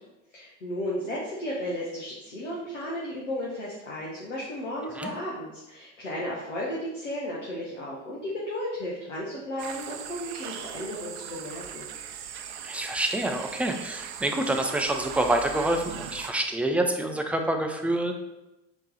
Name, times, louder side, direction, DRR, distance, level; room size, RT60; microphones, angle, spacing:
voice 1, 0.3-11.8, left 1 dB, 85° left, -5 dB, 0.8 m, -34 dB
sound 1, 9.6-16.3, right 9 dB, 65° right, 0.5 m, -39 dB
voice 2, 12.6-18.1, right 1 dB, 5° right, 4 dB, 0.4 m, -27 dB
3.6 x 3.1 x 4.0 m, 0.98 s
figure-of-eight pair, 65°, 36 cm